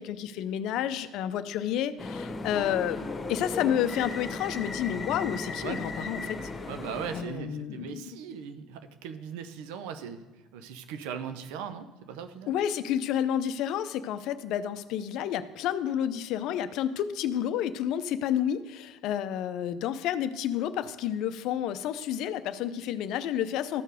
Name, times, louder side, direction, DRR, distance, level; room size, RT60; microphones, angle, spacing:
voice 1, 0.0-6.4 7.1-8.0 12.5-23.8, left 10 dB, 65° left, 13 dB, 0.5 m, -30 dB
sound 1, 2.0-7.2, left 3 dB, 30° left, 1.3 m, -36 dB
voice 2, 5.6-6.3 6.6-10.2 10.5-12.5, right 7 dB, 75° right, 9 dB, 0.7 m, -39 dB
13.0 x 4.5 x 5.1 m, 1.1 s
hypercardioid pair, 65°, 0 cm